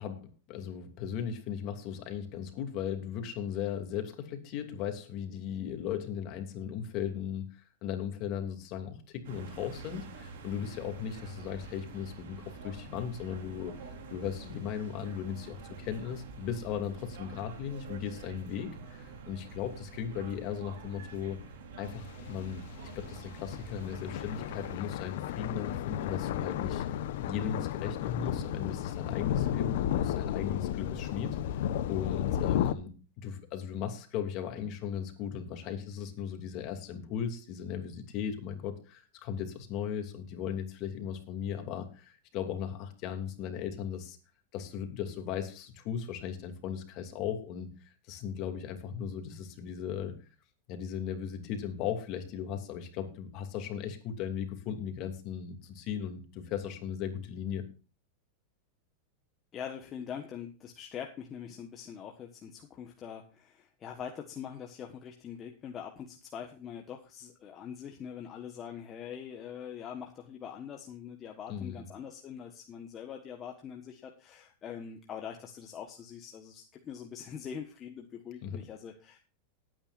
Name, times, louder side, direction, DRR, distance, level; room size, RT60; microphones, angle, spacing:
voice 1, 0.0-21.4 21.8-22.6 22.9-32.9 33.2-44.2 44.5-50.2 50.7-57.7 71.5-71.9 78.4-78.6, left 8 dB, 45° left, 5 dB, 2.7 m, -37 dB
sound 1, 9.2-24.8, right 4 dB, 75° right, 3.9 m, -47 dB
sound 2, 21.8-32.7, left 10 dB, 70° left, 1.0 m, -33 dB
voice 2, 59.5-79.3, left 8 dB, 30° left, 3 dB, 1.4 m, -43 dB
19.0 x 9.1 x 2.6 m, 0.34 s
supercardioid pair, 135°, 0 cm